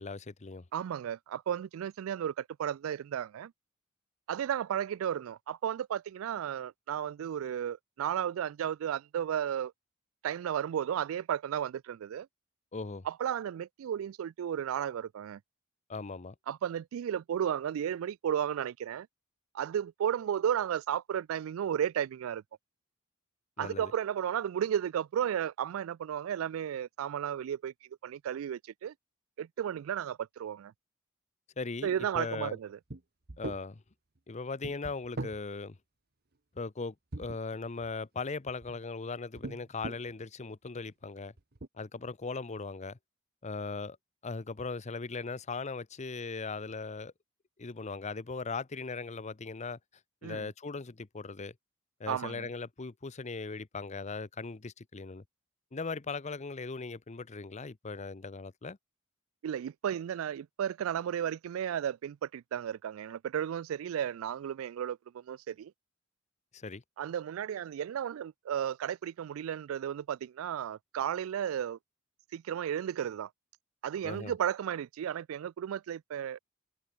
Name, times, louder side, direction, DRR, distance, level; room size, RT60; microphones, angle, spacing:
voice 1, 0.0-0.6 12.7-13.0 15.9-16.3 23.6-23.9 31.6-32.6 33.4-33.8 34.3-35.8 36.5-41.3 41.8-43.0 43.4-44.0 44.2-47.1 47.6-49.8 50.2-51.5 52.0-55.2 55.7-58.8 66.5-66.8 74.0-74.3, left 4 dB, 35° left, 0.7 m, -39 dB
voice 2, 0.7-3.5 4.3-9.7 10.2-12.3 13.1-15.4 16.5-19.1 19.5-22.4 23.6-27.7 28.0-28.9 29.4-30.7 31.8-32.8 50.2-50.5 52.1-52.5 59.4-65.7 67.0-71.8 72.3-73.3 73.8-76.4, right 9 dB, 80° right, 0.3 m, -34 dB
sound 1, 32.9-33.0 33.3-33.6 34.6-35.4 37.1-37.9 38.5-38.8 39.4-40.1 40.9-41.0 41.4-41.7, right 2 dB, 50° right, 1.2 m, -40 dB
head